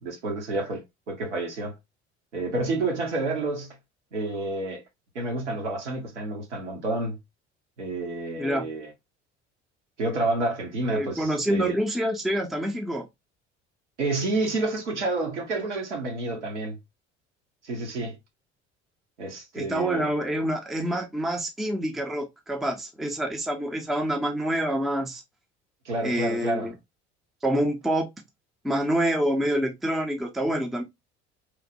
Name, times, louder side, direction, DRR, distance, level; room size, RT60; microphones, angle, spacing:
voice 1, 0.0-1.7 2.3-3.8 4.1-4.8 5.1-7.2 7.8-8.9 10.0-11.8 14.0-16.8 17.6-18.2 19.2-20.1 25.8-26.7, right 2 dB, 80° right, 0.9 m, -29 dB
voice 2, 10.9-13.1 19.5-25.2 26.0-26.7 27.4-28.1 28.6-30.8, right 1 dB, ahead, 0.4 m, -27 dB
3.0 x 2.0 x 2.6 m
figure-of-eight pair, 60°, 35 cm